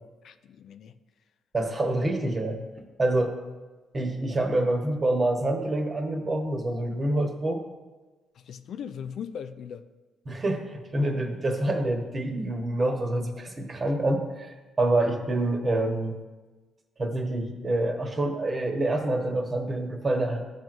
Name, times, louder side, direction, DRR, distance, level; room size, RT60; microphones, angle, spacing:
voice 1, 0.2-1.0 8.4-9.8, left 8 dB, 70° left, 10 dB, 0.4 m, -39 dB
voice 2, 1.5-2.6 3.0-3.4 3.9-7.6 10.2-16.2 17.0-20.4, right 1 dB, 35° right, 3 dB, 1.2 m, -27 dB
13.5 x 6.1 x 2.6 m, 1.2 s
cardioid pair, 90°, 0 cm